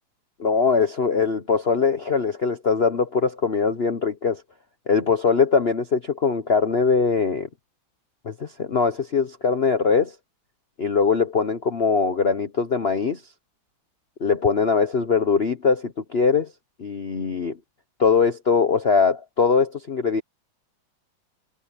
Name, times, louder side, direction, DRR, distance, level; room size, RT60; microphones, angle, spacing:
voice 1, 0.4-4.4 4.9-7.5 8.2-10.1 10.8-13.2 14.2-16.5 16.8-17.6 18.0-20.2, left 5 dB, 40° left, 0.9 m, -21 dB
omnidirectional pair, 2.3 m